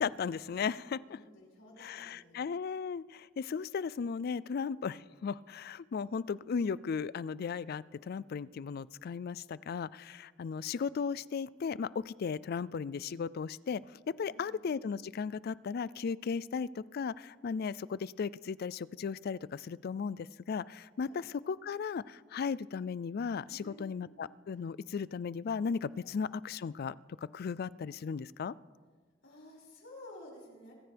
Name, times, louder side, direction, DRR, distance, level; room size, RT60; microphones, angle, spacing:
voice 1, 0.0-1.2 1.8-28.5, left 6 dB, 50° left, 20 dB, 0.3 m, -36 dB
voice 2, 0.9-2.4 14.2-14.7 21.0-21.2 23.5-24.0 26.0-26.2 29.2-30.7, left 1 dB, 75° left, -3 dB, 5.8 m, -53 dB
25.0 x 14.5 x 3.4 m, 1.5 s
head